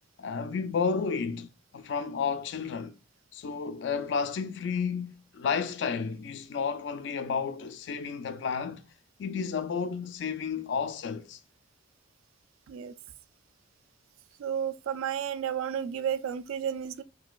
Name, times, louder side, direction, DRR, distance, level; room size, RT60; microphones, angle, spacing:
voice 1, 0.2-1.5 1.7-2.9 3.3-8.8 9.2-11.4, left 5 dB, 60° left, 0.3 m, -31 dB
voice 2, 14.4-17.0, right 8 dB, 90° right, 0.3 m, -32 dB
3.8 x 2.4 x 2.2 m
head